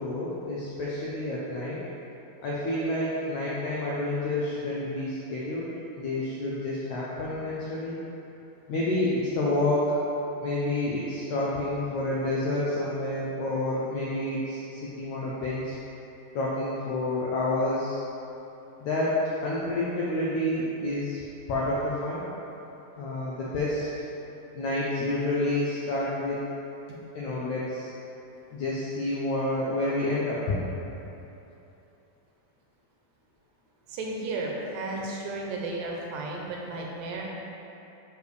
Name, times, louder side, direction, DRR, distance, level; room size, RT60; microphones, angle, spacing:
voice 1, 0.0-1.8 2.4-5.7 6.0-8.0 8.7-9.9 10.4-15.8 16.3-18.0 18.8-21.2 21.5-22.3 23.0-23.9 24.6-26.4 27.2-27.9 28.5-30.5, left 2 dB, 85° left, -7 dB, 1.6 m, -29 dB
voice 2, 33.9-37.3, right 2 dB, 80° right, -1 dB, 2.3 m, -34 dB
6.8 x 5.0 x 3.2 m, 2.9 s
omnidirectional pair, 4.2 m